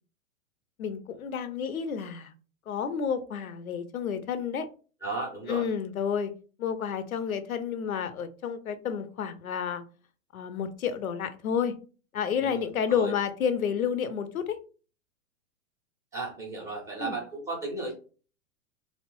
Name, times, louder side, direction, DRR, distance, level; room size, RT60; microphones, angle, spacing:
voice 1, 0.8-2.3 2.7-4.7 5.5-6.3 6.6-9.8 10.3-11.7 12.1-14.6 17.0-17.2, left 7 dB, 80° left, 0.5 m, -30 dB
voice 2, 5.0-5.7 12.4-13.1 16.1-17.9, right 3 dB, 10° right, 0.5 m, -35 dB
2.7 x 2.0 x 3.0 m
figure-of-eight pair, 105°, 42 cm